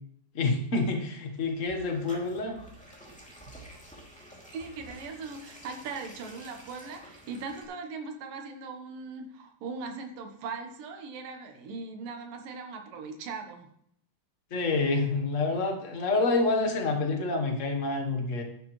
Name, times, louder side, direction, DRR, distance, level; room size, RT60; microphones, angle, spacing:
voice 1, 0.3-2.6 14.5-18.4, left 3 dB, 85° left, 3 dB, 0.6 m, -27 dB
sound 1, 1.3-7.6, right 1 dB, ahead, 2.3 m, -50 dB
voice 2, 4.5-13.7, right 4 dB, 90° right, 4 dB, 3.0 m, -39 dB
12.0 x 11.0 x 3.2 m, 0.70 s
omnidirectional pair, 3.7 m